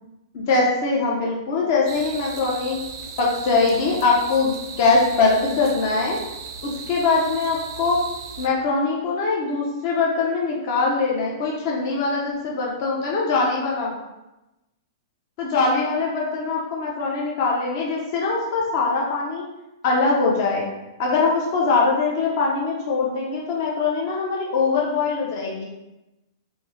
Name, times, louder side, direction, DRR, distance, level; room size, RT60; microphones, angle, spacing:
voice 1, 0.3-2.8 3.2-6.2 6.6-8.0 8.4-13.9 15.4-19.4 19.8-20.7 21.0-25.6, left 4 dB, 45° left, -3 dB, 0.6 m, -22 dB
sound 1, 1.9-8.5, right 6 dB, 55° right, 0.5 m, -37 dB
3.5 x 2.6 x 3.1 m, 0.98 s
hypercardioid pair, 155°, 2 cm